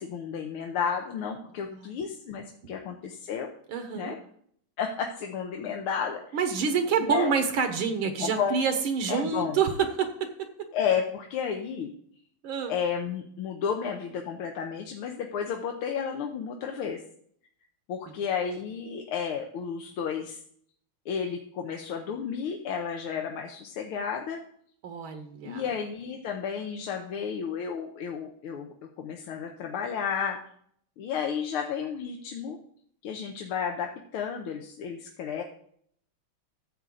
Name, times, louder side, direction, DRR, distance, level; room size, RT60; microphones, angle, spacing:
voice 1, 0.0-3.5 4.0-4.2 4.8-6.4 7.0-7.3 8.2-8.6 9.1-9.6 10.7-11.9 12.7-17.0 17.9-20.4 21.1-24.4 25.4-28.7 29.0-30.4 31.0-32.6 33.0-35.4, left 7 dB, 85° left, 3 dB, 1.8 m, -32 dB
voice 2, 1.7-2.0 3.7-4.2 6.3-10.3 10.6-10.7 12.4-12.7 24.8-25.6, right 6 dB, 75° right, 7 dB, 1.9 m, -27 dB
13.5 x 7.7 x 3.8 m, 0.64 s
omnidirectional pair, 2.3 m